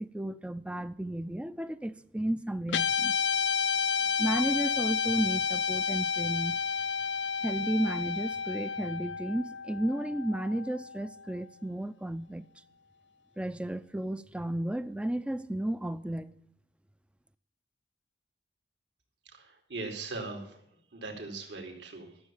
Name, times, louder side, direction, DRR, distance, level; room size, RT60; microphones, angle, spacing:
voice 1, 0.0-3.2 4.2-6.6 7.4-12.5 13.4-16.3, right 1 dB, 5° right, 0.4 m, -33 dB
Guitar, 2.7-11.2, left 6 dB, 75° left, 0.5 m, -31 dB
voice 2, 19.3-20.6 20.9-22.1, right 3 dB, 70° right, 2.9 m, -40 dB
13.5 x 7.3 x 7.1 m
head